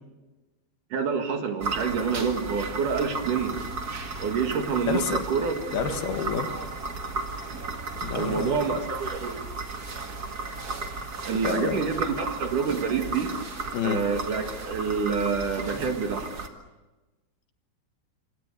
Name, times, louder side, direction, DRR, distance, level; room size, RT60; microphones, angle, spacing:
voice 1, 0.9-3.6 4.2-5.5 5.9-6.0 8.1-9.4 11.3-13.3 13.8-16.3, right 5 dB, 60° right, 5 dB, 3.2 m, -27 dB
sound 1, 1.6-16.5, right 3 dB, 40° right, 1.4 m, -34 dB
voice 2, 4.9-5.2 5.7-6.5 8.0-8.7 11.4-11.8 13.7-14.0, left 7 dB, 75° left, 7 dB, 3.5 m, -29 dB
27.5 x 25.5 x 6.8 m, 1.2 s
omnidirectional pair, 4.6 m